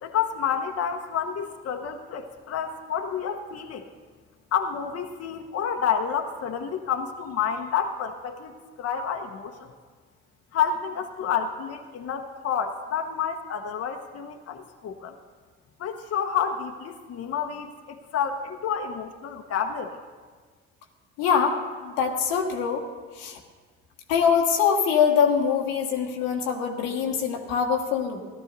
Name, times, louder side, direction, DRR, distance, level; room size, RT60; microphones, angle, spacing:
voice 1, 0.0-3.8 4.5-8.5 8.8-9.7 10.5-15.1 15.8-19.9, left 7 dB, 50° left, 5 dB, 1.0 m, -29 dB
voice 2, 21.2-21.6 21.8-22.8 23.2-23.4 24.1-28.2, left 7 dB, 80° left, 3 dB, 1.3 m, -23 dB
14.5 x 12.0 x 4.0 m, 1.5 s
hypercardioid pair, 60°, 30 cm